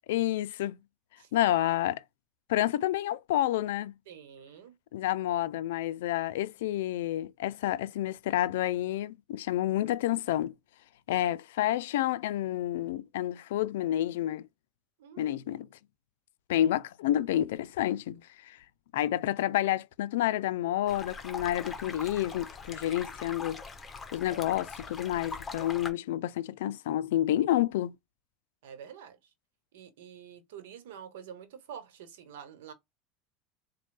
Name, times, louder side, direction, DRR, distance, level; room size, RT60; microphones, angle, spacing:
voice 1, 0.1-0.8 1.3-2.0 2.5-3.9 4.9-10.5 11.1-14.4 15.2-15.7 16.5-18.6 18.9-23.6 24.1-27.9, left 13 dB, 85° left, 0.3 m, -29 dB
voice 2, 4.1-4.7 11.1-11.3 15.0-15.3 28.6-29.2 29.7-32.7, right 8 dB, 85° right, 1.0 m, -47 dB
sound 1, 20.9-25.9, left 4 dB, 20° left, 1.0 m, -42 dB
4.2 x 2.2 x 3.2 m
supercardioid pair, 115°, 0 cm